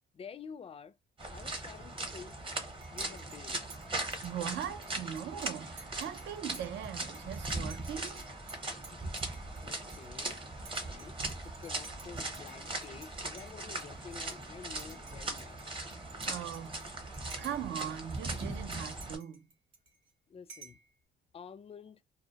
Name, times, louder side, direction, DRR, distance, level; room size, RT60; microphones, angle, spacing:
voice 1, 0.1-1.0 1.3-2.4 2.9-3.7 8.9-10.4 10.7-11.2 11.4-15.6 20.3-20.8 21.3-22.0, left 6 dB, 30° left, 0.4 m, -50 dB
sound 1, 1.2-19.2, right 2 dB, 25° right, 0.7 m, -39 dB
Dishes pots and pans / Cutlery silverware / Chink clink, 2.8-13.1 13.4-14.5 14.8-17.9 18.1-20.1 20.5-20.9, right 4 dB, 90° right, 0.9 m, -54 dB
voice 2, 4.2-8.2 16.2-16.8 17.4-19.5, right 10 dB, 65° right, 0.5 m, -40 dB
2.1 x 2.1 x 2.8 m
cardioid pair, 90°, 20 cm